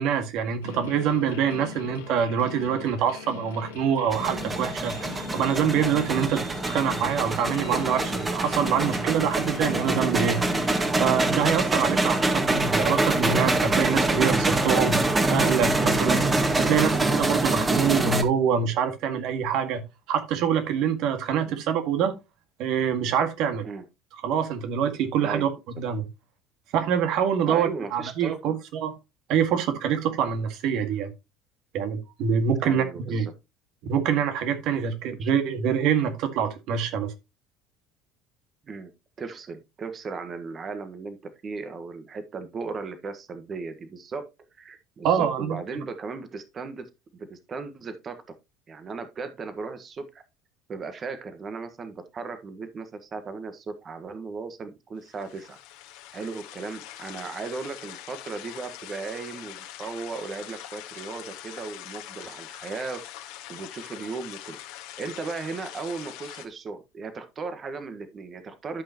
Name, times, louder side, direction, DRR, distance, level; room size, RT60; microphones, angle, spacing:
voice 1, 0.0-10.4 11.0-15.0 15.3-16.3 16.6-22.1 22.6-23.7 24.2-26.1 26.7-28.9 29.3-31.1 31.7-33.3 33.8-37.1 45.0-45.6, right 7 dB, 65° right, 1.9 m, -25 dB
sound 1, 0.6-10.9, left 9 dB, 90° left, 1.7 m, -41 dB
sound 2, 4.1-18.2, right 2 dB, 20° right, 1.8 m, -25 dB
voice 2, 27.4-28.6 32.6-33.3 35.1-35.3 38.6-38.9 39.2-41.2 41.4-44.2 44.6-46.9 47.1-48.2 48.7-50.2 50.7-55.6 56.1-63.0 63.5-64.6 65.0-68.8, right 4 dB, 40° right, 1.5 m, -36 dB
sound 3, 55.0-66.5, left 14 dB, 75° left, 1.8 m, -43 dB
12.5 x 5.7 x 3.0 m
hypercardioid pair, 75°, 0 cm